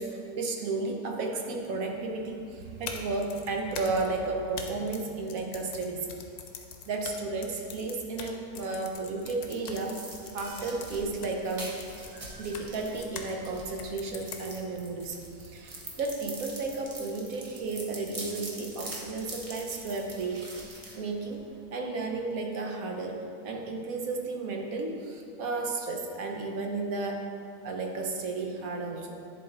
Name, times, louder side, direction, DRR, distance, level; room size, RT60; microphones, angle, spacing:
voice 1, 0.0-6.1 6.9-10.0 10.3-11.7 12.1-21.4 21.7-23.2 23.4-27.3 27.6-29.2, right 3 dB, 65° right, 2 dB, 1.1 m, -33 dB
sound 1, 2.7-13.3 13.8-14.8, left 6 dB, 75° left, 1.2 m, -44 dB
sound 2, 8.9-21.6, right 1 dB, 30° right, 0.8 m, -44 dB
10.0 x 3.9 x 3.8 m, 2.5 s
omnidirectional pair, 1.7 m